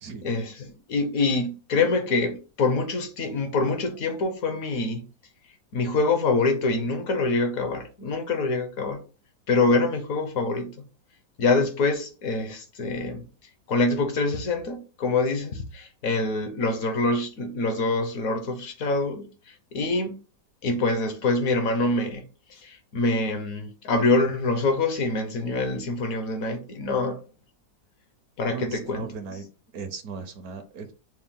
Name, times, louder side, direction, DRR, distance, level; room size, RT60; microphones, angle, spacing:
voice 1, 0.2-5.1 5.7-9.0 9.5-10.7 11.4-13.2 13.7-20.2 20.6-22.2 22.5-27.2 28.4-29.1, left 3 dB, 65° left, 1.1 m, -25 dB
voice 2, 28.5-29.5 29.7-30.9, right 5 dB, 70° right, 1.0 m, -37 dB
5.6 x 2.2 x 3.6 m
omnidirectional pair, 1.7 m